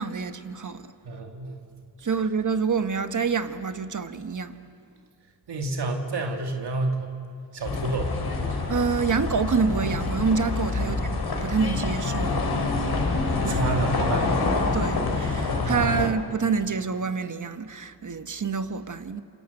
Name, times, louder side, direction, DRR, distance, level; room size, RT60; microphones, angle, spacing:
voice 1, 0.0-0.9 2.0-4.6 8.7-11.0 11.4-12.9 13.3-13.6 14.7-19.2, right 5 dB, 50° right, 1.3 m, -27 dB
voice 2, 1.0-1.7 5.5-7.1 7.5-8.2 10.8-11.0 12.7-13.0 13.5-14.4 15.7-16.0, right 3 dB, 80° right, 2.3 m, -30 dB
sound 1, 7.6-16.1, left 3 dB, 70° left, 3.7 m, -26 dB
27.5 x 25.5 x 7.9 m
cardioid pair, 65°, 40 cm